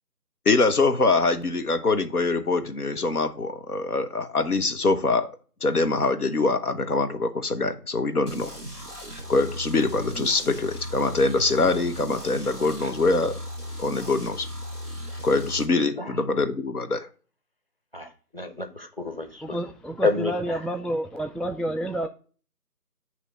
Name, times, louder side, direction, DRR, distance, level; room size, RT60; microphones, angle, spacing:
voice 1, 0.5-5.3 5.6-8.5 9.3-13.4 13.8-14.5 15.2-17.1, left 3 dB, 70° left, 0.9 m, -24 dB
sound 1, 8.3-15.6, equal, 25° left, 1.7 m, -37 dB
voice 2, 17.9-19.6 20.0-20.5, left 3 dB, 40° right, 0.6 m, -29 dB
voice 3, 19.4-22.1, right 1 dB, ahead, 0.3 m, -29 dB
8.0 x 2.9 x 4.0 m
figure-of-eight pair, 170°, 47 cm